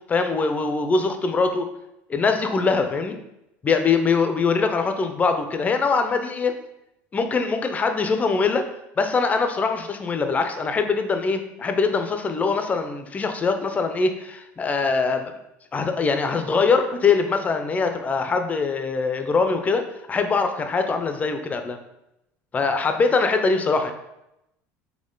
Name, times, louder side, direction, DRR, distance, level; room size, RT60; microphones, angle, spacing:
voice 1, 0.1-1.7 2.1-3.2 3.6-6.5 7.1-8.7 9.0-15.3 15.7-21.8 22.5-23.9, left 4 dB, 25° left, 7 dB, 0.5 m, -22 dB
4.3 x 2.8 x 3.8 m, 0.87 s
supercardioid pair, 120°, 6 cm